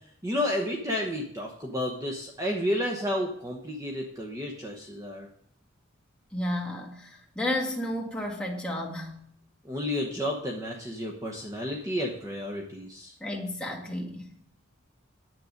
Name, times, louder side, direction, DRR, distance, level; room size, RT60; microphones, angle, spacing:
voice 1, 0.2-5.3 9.6-13.1, left 1 dB, 15° right, 0 dB, 1.0 m, -31 dB
voice 2, 6.3-9.3 13.2-14.3, left 1 dB, 5° left, -1 dB, 1.8 m, -32 dB
9.7 x 7.8 x 5.2 m, 0.67 s
head